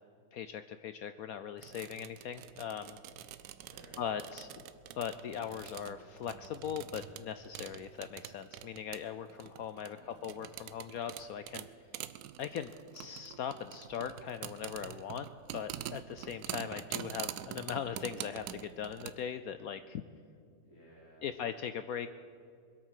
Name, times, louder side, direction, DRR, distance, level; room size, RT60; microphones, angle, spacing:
voice 1, 0.3-3.0 4.0-4.6 4.9-11.7 12.4-20.0 21.2-22.1, left 8 dB, 80° left, 11 dB, 0.8 m, -40 dB
sound 1, 1.6-19.1, right 12 dB, 70° right, 1.0 m, -46 dB
voice 2, 3.6-4.1 9.9-10.4 20.6-21.3, equal, 30° left, -7 dB, 3.6 m, -58 dB
22.5 x 8.5 x 6.5 m, 2.4 s
omnidirectional pair, 2.1 m